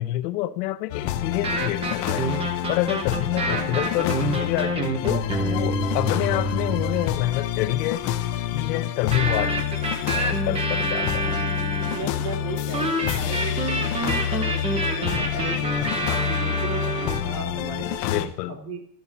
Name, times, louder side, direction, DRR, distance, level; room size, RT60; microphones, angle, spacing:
voice 1, 0.0-2.3 2.7-8.1 8.5-9.7 10.1-11.4 15.8-16.1 18.1-18.6, left 15 dB, 85° left, 0.8 m, -28 dB
sound 1, 0.9-18.3, left 11 dB, 35° left, 0.5 m, -28 dB
sound 2, 1.3-7.2 9.1-12.1 12.7-17.2, right 2 dB, 15° right, 0.7 m, -28 dB
voice 2, 3.5-5.0 11.2-15.6 16.1-18.8, right 4 dB, 75° right, 3.3 m, -37 dB
13.0 x 4.3 x 6.8 m
supercardioid pair, 160°, 47 cm